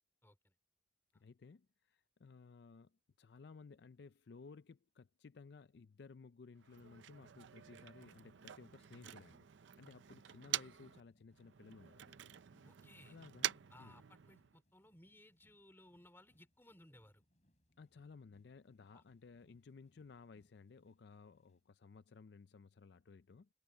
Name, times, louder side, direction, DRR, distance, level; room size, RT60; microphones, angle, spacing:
voice 1, 0.2-0.5 12.6-13.2 13.7-17.2 18.9-19.0, left 1 dB, 10° left, 2.7 m, -62 dB
voice 2, 1.1-12.3 13.1-14.0 17.8-23.5, left 4 dB, 60° left, 0.4 m, -58 dB
Motor vehicle (road), 6.6-11.0 11.3-14.6, right 12 dB, 75° right, 0.5 m, -46 dB
sound 1, 10.8-21.6, equal, 35° left, 6.2 m, -77 dB
head